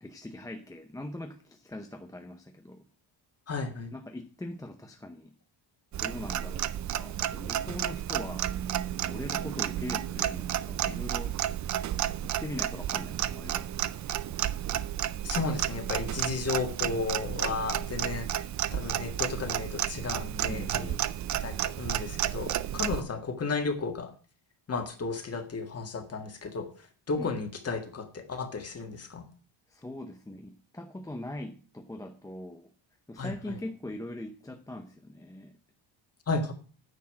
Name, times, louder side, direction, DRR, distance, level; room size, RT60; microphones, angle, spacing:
voice 1, 0.0-2.8 3.9-5.4 6.0-8.5 9.1-11.4 12.2-13.9 20.5-21.1 27.2-27.3 29.7-32.7 33.1-35.5, left 1 dB, 5° left, 4 dB, 0.6 m, -41 dB
voice 2, 3.5-3.9 15.2-18.4 18.7-21.0 21.4-24.1 24.7-26.7 27.1-29.3 33.2-33.6 36.3-36.5, left 4 dB, 30° left, 6 dB, 1.8 m, -33 dB
Clock, 5.9-23.0, right 11 dB, 40° right, 0.4 m, -32 dB
9.6 x 6.6 x 7.5 m, 0.39 s
cardioid pair, 170°, 49 cm